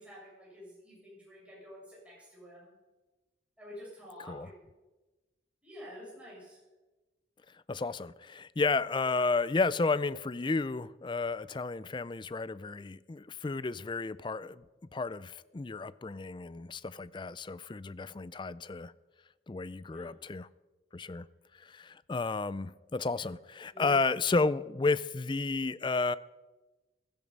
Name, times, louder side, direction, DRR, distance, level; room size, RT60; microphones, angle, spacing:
voice 1, 0.0-2.7 3.6-4.7 5.6-6.6 19.9-20.1 23.7-24.0, equal, 5° right, 6.3 m, -49 dB
voice 2, 7.7-14.6 14.9-18.9 19.5-20.5 20.9-21.3 21.6-26.2, left 3 dB, 25° left, 0.4 m, -32 dB
15.5 x 14.0 x 5.4 m
head